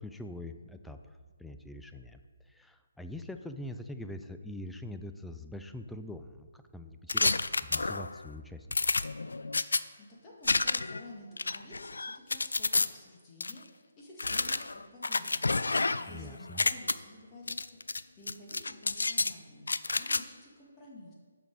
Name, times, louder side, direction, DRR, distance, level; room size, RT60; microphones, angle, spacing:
voice 1, 0.0-2.2 2.5-9.0 16.1-16.6, left 1 dB, 5° left, 7 dB, 0.4 m, -44 dB
sound 1, 7.1-8.2 8.7-9.8 10.4-11.0 11.4-12.9 13.4-13.5 14.2-16.2 16.5-16.9 17.5-18.0 18.3-19.3 19.7-20.2, left 3 dB, 85° left, 0.3 m, -29 dB
voice 2, 10.0-15.5 16.0-17.8 18.2-19.7 19.9-21.1, left 1 dB, 20° left, -3 dB, 1.8 m, -51 dB
8.1 x 5.9 x 4.8 m, 1.5 s
figure-of-eight pair, 150°, 0 cm